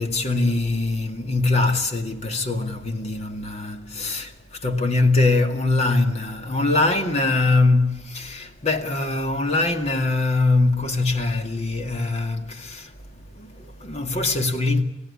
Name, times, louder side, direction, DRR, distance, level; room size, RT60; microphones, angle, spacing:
voice 1, 0.0-14.8, left 2 dB, 35° left, 2.1 m, -23 dB
29.0 x 16.5 x 8.5 m
head